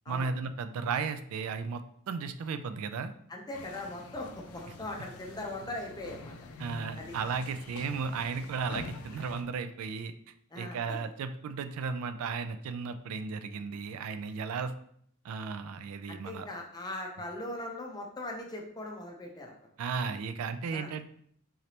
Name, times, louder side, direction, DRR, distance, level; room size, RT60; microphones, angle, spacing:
voice 1, 0.1-1.8 2.1-3.1 6.6-10.1 10.6-14.7 15.2-16.5 19.8-21.1, right 5 dB, 80° right, 9 dB, 0.3 m, -35 dB
voice 2, 3.3-6.3 7.0-7.1 10.5-10.8 16.1-19.6 20.7-20.9, left 1 dB, 20° left, 1 dB, 0.6 m, -40 dB
sound 1, 3.5-9.4, left 3 dB, 75° left, 0.4 m, -46 dB
3.9 x 3.2 x 2.8 m, 0.65 s
head